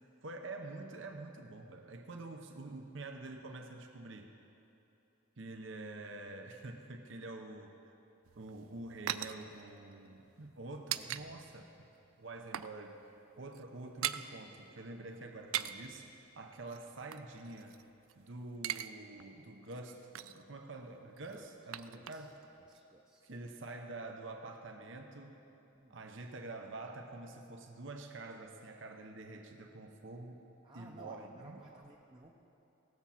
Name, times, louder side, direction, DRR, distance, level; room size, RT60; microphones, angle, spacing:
voice 1, 0.2-4.3 5.4-7.9 8.4-11.7 12.2-13.0 13.4-17.8 18.1-22.4 23.2-25.4 25.9-30.4 30.7-31.8, right 2 dB, 60° right, 3 dB, 0.8 m, -47 dB
sound 1, 8.3-11.2 11.5-11.7 12.1-12.8 13.0-13.2 13.4-14.3 15.3-15.9 16.7-18.1 18.4-18.9 19.2-19.3 19.7-20.5 21.2-22.5 22.7-22.8, right 11 dB, 80° right, 0.4 m, -41 dB
voice 2, 11.0-11.4 21.3-21.5 21.9-22.3 22.6-23.2 25.7-26.0 30.6-32.4, right 2 dB, 20° right, -1 dB, 0.6 m, -57 dB
17.5 x 7.2 x 5.7 m, 3.0 s
head